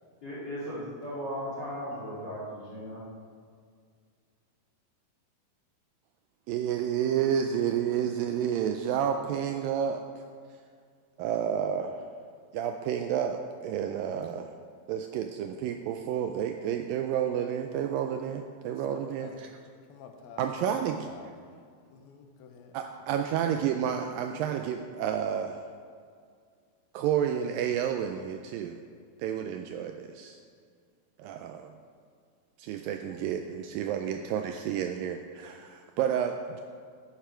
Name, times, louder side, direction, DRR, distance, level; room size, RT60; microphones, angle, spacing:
voice 1, 0.2-3.0, equal, 30° left, -8 dB, 2.6 m, -37 dB
voice 2, 6.5-10.0 11.2-12.0 12.5-14.5 14.9-19.5 20.4-21.1 22.7-25.6 26.9-28.8 29.2-30.4 31.2-31.7 32.6-36.6, right 9 dB, 80° right, 5 dB, 2.1 m, -30 dB
voice 3, 18.7-19.4 19.9-20.5 20.8-21.6 21.9-22.9 33.5-33.8, left 6 dB, 80° left, 4 dB, 2.8 m, -50 dB
10.5 x 9.8 x 4.4 m, 2.1 s
omnidirectional pair, 4.4 m